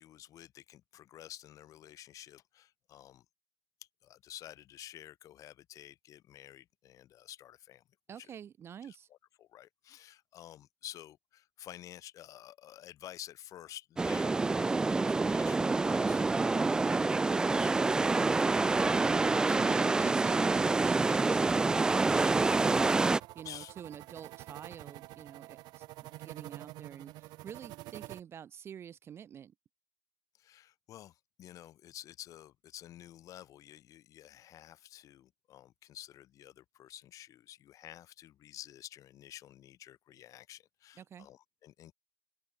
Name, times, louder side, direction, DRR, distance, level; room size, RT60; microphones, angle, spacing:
voice 1, 0.0-3.3 4.0-7.8 8.2-8.3 8.8-9.0 9.4-16.2 16.5-19.7 21.1-21.2 22.0-22.3 23.4-23.7 30.3-41.9, left 12 dB, 30° left, 5.4 m, -51 dB
voice 2, 8.1-9.1 19.6-29.5 41.0-41.3, right 8 dB, 25° right, 2.1 m, -48 dB
sound 1, 14.0-23.2, right 3 dB, 5° right, 0.4 m, -27 dB
sound 2, 21.8-28.2, right 19 dB, 40° right, 4.0 m, -49 dB
open air
hypercardioid pair, 120°, 10 cm